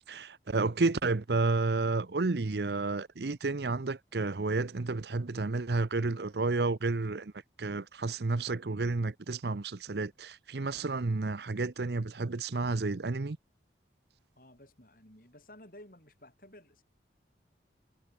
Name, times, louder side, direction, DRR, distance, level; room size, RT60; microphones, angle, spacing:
voice 1, 0.1-7.3 7.6-13.4, right 3 dB, 65° right, 0.7 m, -31 dB
voice 2, 14.4-16.8, left 1 dB, 50° left, 7.6 m, -54 dB
head